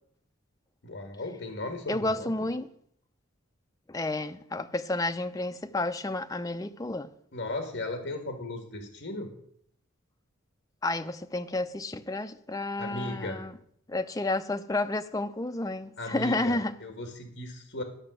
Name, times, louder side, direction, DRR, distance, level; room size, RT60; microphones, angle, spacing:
voice 1, 0.8-2.5 7.3-9.3 12.8-13.4 16.0-17.8, left 2 dB, 60° left, 1.6 m, -36 dB
voice 2, 1.9-2.7 3.9-7.1 10.8-13.6 13.9-16.8, left 2 dB, 15° left, 0.5 m, -31 dB
12.0 x 5.7 x 7.6 m
head